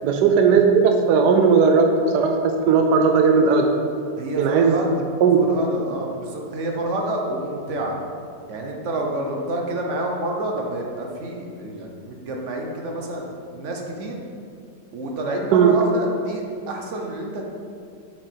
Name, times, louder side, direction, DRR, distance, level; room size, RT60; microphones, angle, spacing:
voice 1, 0.0-1.9 2.1-3.7 4.4-4.8 5.2-5.5 15.5-15.7, right 6 dB, 75° right, 3 dB, 1.1 m, -17 dB
voice 2, 4.2-4.9 5.4-8.0 8.5-14.2 14.9-17.4, right 1 dB, 50° right, 0 dB, 1.0 m, -28 dB
7.4 x 4.8 x 4.4 m, 2.4 s
omnidirectional pair, 1.9 m